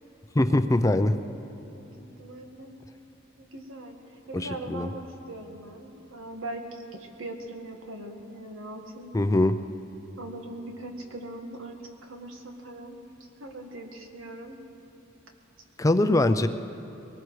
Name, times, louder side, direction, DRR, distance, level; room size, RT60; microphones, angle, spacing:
voice 1, 0.3-1.1 4.3-4.9 9.1-9.5 15.8-16.5, left 1 dB, 15° left, 9 dB, 0.5 m, -22 dB
voice 2, 2.2-2.8 3.4-9.1 10.2-13.0 13.4-14.6, right 1 dB, 90° right, 2 dB, 1.7 m, -40 dB
23.0 x 19.0 x 3.2 m, 2.9 s
head